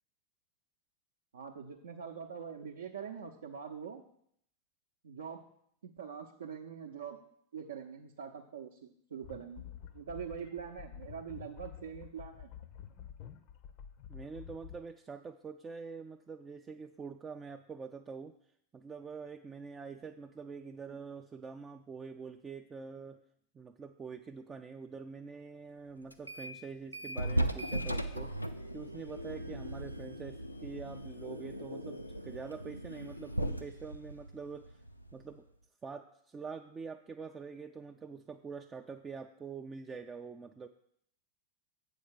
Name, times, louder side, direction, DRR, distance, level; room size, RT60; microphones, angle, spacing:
voice 1, 1.3-4.0 5.0-5.5 5.8-7.2 7.5-9.6 9.9-12.5, right 7 dB, 65° right, 1 dB, 0.6 m, -44 dB
sound 1, 9.2-14.8, left 8 dB, 45° left, 0.6 m, -49 dB
voice 2, 14.1-18.3 18.7-23.2 23.5-28.3 28.7-34.8 35.1-35.5 35.8-40.7, right 5 dB, 20° right, 5 dB, 0.4 m, -45 dB
sound 2, 26.1-26.6 26.9-35.4, right 1 dB, 90° left, 0.5 m, -38 dB
7.6 x 4.7 x 6.4 m, 0.69 s
figure-of-eight pair, 90°, 0 cm